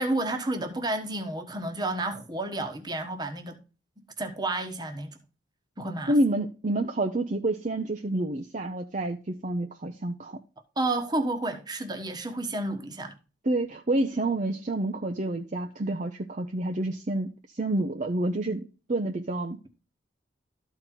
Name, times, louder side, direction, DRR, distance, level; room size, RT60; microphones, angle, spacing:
voice 1, 0.0-3.6 4.2-5.2 5.8-6.1 10.8-13.1, right 2 dB, 20° right, 1.2 m, -31 dB
voice 2, 6.1-10.4 13.4-19.6, right 1 dB, 40° right, 0.6 m, -28 dB
13.0 x 4.6 x 3.8 m
head